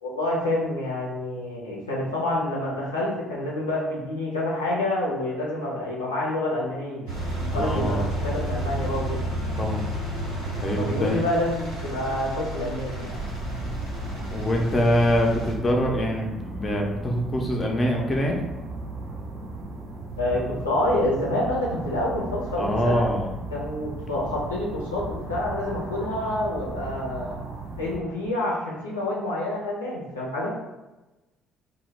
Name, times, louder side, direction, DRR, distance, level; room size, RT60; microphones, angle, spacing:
voice 1, 0.0-7.0 7.4-9.2 10.8-13.1 20.2-23.0 23.5-27.4 27.8-30.5, left 1 dB, 85° left, -5 dB, 0.5 m, -28 dB
Engine, 7.1-15.5, right 1 dB, 85° right, 0.9 m, -31 dB
voice 2, 7.5-8.0 9.6-9.8 10.6-11.3 14.3-18.4 22.6-23.3, equal, 30° left, 0 dB, 0.5 m, -24 dB
sound 1, 13.1-28.0, right 2 dB, 55° right, 0.4 m, -36 dB
2.1 x 2.0 x 3.1 m, 1.1 s
figure-of-eight pair, 50°, 0 cm